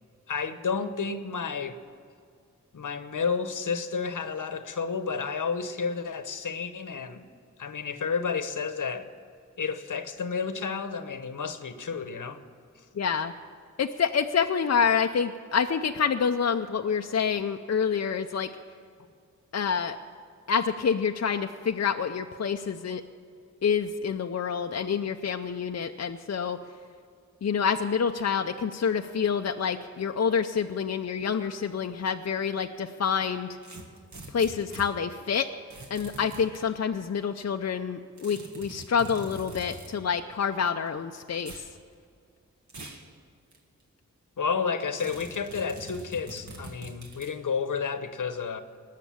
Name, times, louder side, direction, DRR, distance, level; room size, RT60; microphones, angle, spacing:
voice 1, 0.3-1.8 2.7-7.3 7.6-9.1 9.6-12.4 44.4-48.6, left 5 dB, 75° left, 10 dB, 1.0 m, -31 dB
voice 2, 13.0-13.3 13.8-18.5 19.5-20.0 20.5-23.0 23.6-26.6 27.4-33.5 34.3-35.5 35.9-41.5, left 6 dB, 55° left, 5 dB, 0.6 m, -27 dB
sound 1, 33.6-34.9 35.7-36.6 38.2-39.9 41.4-41.7 42.7-43.1 43.5-43.6 45.0-47.4, right 2 dB, 65° right, 1.9 m, -43 dB
20.0 x 6.7 x 8.6 m, 2.3 s
wide cardioid pair, 70°, 31 cm